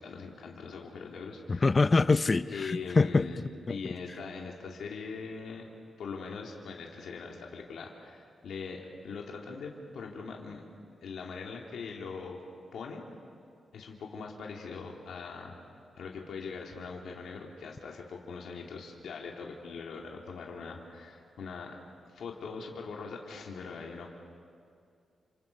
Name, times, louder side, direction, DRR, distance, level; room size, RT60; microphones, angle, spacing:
voice 1, 0.0-1.8 2.4-3.4 3.7-5.7 6.0-10.6 11.0-12.4 12.7-13.1 13.7-15.6 15.9-21.8 22.1-24.1, left 5 dB, 85° left, 2.6 m, -41 dB
voice 2, 1.6-2.4 3.0-3.2 3.7-3.8, left 3 dB, 30° left, 0.6 m, -23 dB
30.0 x 27.5 x 5.3 m
wide cardioid pair, 125°, 0 cm